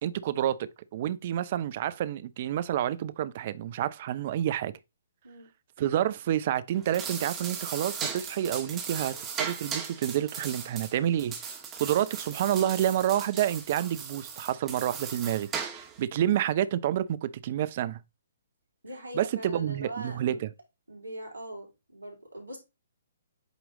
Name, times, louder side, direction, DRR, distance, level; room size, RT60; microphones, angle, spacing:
voice 1, 0.0-4.7 5.8-11.5 11.8-18.0 19.1-20.5, right 11 dB, 45° right, 0.6 m, -29 dB
sound 1, 6.7-16.0, right 6 dB, 20° right, 1.4 m, -37 dB
voice 2, 18.8-20.4 20.9-22.6, right 1 dB, 85° right, 3.0 m, -41 dB
8.1 x 3.1 x 3.8 m
figure-of-eight pair, 130°, 0 cm